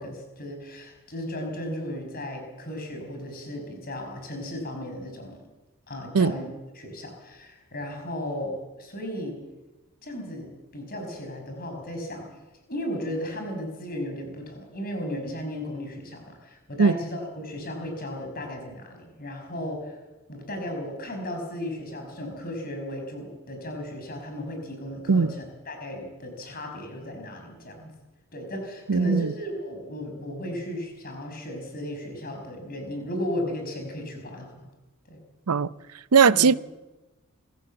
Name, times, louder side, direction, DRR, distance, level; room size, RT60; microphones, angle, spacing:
voice 1, 0.0-5.4 5.9-9.4 10.0-12.3 12.7-20.0 20.3-27.9 28.3-34.7 35.1-35.2 36.3-36.5, left 1 dB, 40° left, 5.9 m, -35 dB
voice 2, 28.9-29.3 35.5-35.7 36.1-36.5, right 5 dB, 90° right, 0.6 m, -19 dB
26.0 x 15.0 x 7.8 m
head